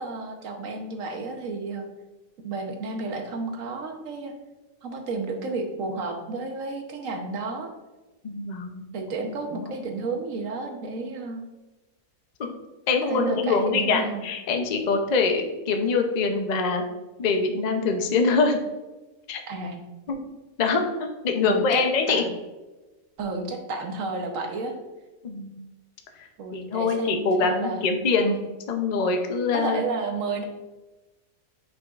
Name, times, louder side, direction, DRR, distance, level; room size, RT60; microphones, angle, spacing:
voice 1, 0.0-1.8 2.4-4.3 4.8-7.7 8.9-11.4 13.0-14.2 19.5-19.8 21.4-22.3 23.2-24.8 26.4-27.8 28.2-28.4 29.5-30.4, right 3 dB, 70° right, 4 dB, 1.2 m, -32 dB
voice 2, 8.2-8.9 12.4-12.6 12.9-16.8 17.2-18.6 19.3-19.4 20.1-20.2 20.6-22.2 25.2-25.6 26.5-28.4 28.7-29.8, left 4 dB, 45° left, 4 dB, 0.6 m, -24 dB
8.5 x 5.1 x 2.4 m, 1.1 s
omnidirectional pair, 1.5 m